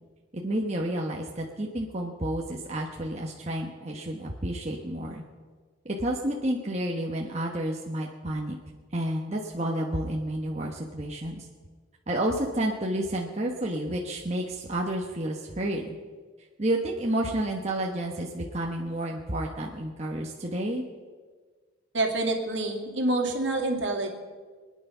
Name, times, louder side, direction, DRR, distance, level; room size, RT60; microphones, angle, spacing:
voice 1, 0.3-5.2 5.8-8.6 8.9-11.5 12.1-16.0 16.6-20.8, right 1 dB, 30° right, -1 dB, 1.2 m, -30 dB
voice 2, 21.9-24.1, right 2 dB, 65° right, 1 dB, 2.4 m, -27 dB
24.0 x 9.6 x 5.6 m, 1.5 s
head